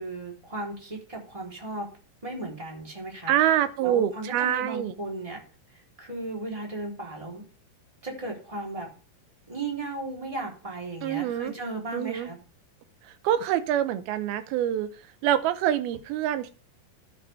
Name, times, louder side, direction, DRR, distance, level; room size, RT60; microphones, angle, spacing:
voice 1, 0.0-1.9 2.2-3.3 3.8-5.4 6.0-7.4 8.0-8.9 9.5-12.4, right 2 dB, 10° right, -2 dB, 3.3 m, -35 dB
voice 2, 3.3-4.9 11.0-11.5 11.9-12.3 13.2-14.9 15.2-16.5, right 11 dB, 80° right, 11 dB, 2.7 m, -25 dB
13.5 x 7.6 x 3.5 m, 0.37 s
omnidirectional pair, 4.4 m